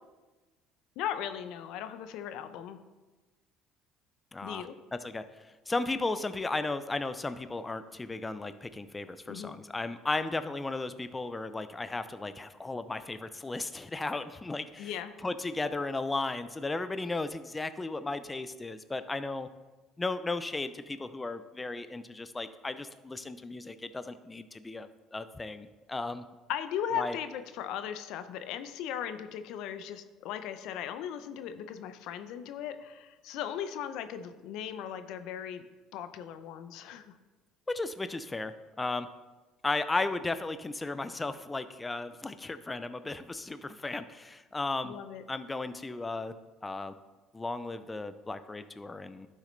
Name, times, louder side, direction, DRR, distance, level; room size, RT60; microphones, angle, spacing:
voice 1, 1.0-2.8 4.4-4.8 9.3-9.6 14.8-15.1 26.5-35.6 35.9-37.1 44.8-45.2, left 9 dB, 70° left, 10 dB, 0.6 m, -37 dB
voice 2, 4.3-4.7 4.9-15.0 15.2-19.5 20.0-26.2 27.0-27.2 37.7-39.1 39.6-44.9 45.3-46.3 46.6-46.9 47.3-49.3, left 3 dB, 20° left, 12 dB, 0.5 m, -35 dB
11.5 x 6.4 x 3.2 m, 1.2 s
supercardioid pair, 75°, 0 cm